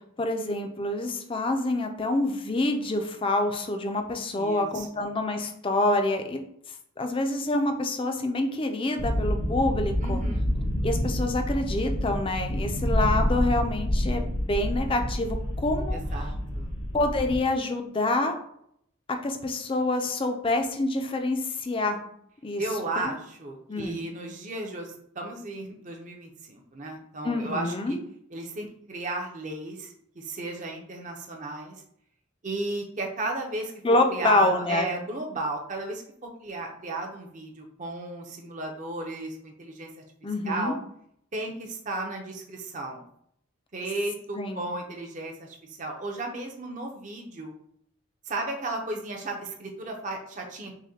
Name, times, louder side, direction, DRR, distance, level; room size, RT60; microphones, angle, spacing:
voice 1, 0.2-6.4 7.0-10.2 10.8-16.0 16.9-18.4 19.1-22.0 22.4-22.6 23.0-23.1 23.7-24.0 27.2-28.0 33.8-34.9 40.2-40.7 44.3-44.7, left 2 dB, 25° left, 5 dB, 0.4 m, -27 dB
voice 2, 4.3-4.9 10.0-10.4 15.9-16.7 22.6-28.0 28.3-31.7 32.4-33.7 34.1-39.9 40.5-40.7 41.3-43.0 43.7-47.5 48.3-50.7, right 2 dB, 35° right, 1 dB, 0.6 m, -34 dB
sound 1, 9.0-17.4, equal, 75° left, 0.9 m, -28 dB
6.2 x 2.2 x 2.8 m, 0.70 s
head